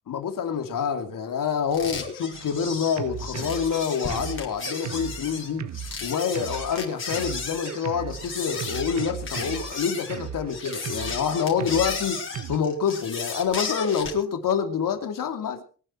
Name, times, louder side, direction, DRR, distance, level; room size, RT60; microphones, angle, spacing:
voice 1, 0.1-5.7 6.0-12.2 12.5-15.6, left 7 dB, 75° left, 2.7 m, -27 dB
sound 1, 1.7-14.2, left 4 dB, 35° left, 5.2 m, -34 dB
Drum kit, 2.3-12.6, right 9 dB, 55° right, 1.1 m, -37 dB
24.0 x 10.0 x 4.5 m
cardioid pair, 125°, 33 cm